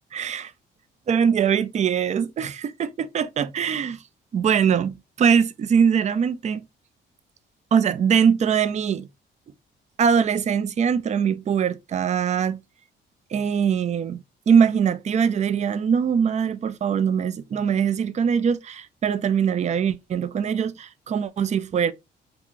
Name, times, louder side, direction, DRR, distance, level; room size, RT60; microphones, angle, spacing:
voice 1, 0.1-0.4 1.1-4.0 4.3-6.6 7.7-9.1 10.0-12.6 13.3-14.2 14.5-21.9, right 7 dB, 35° right, 0.4 m, -22 dB
2.9 x 2.4 x 3.7 m
cardioid pair, 90°, 20 cm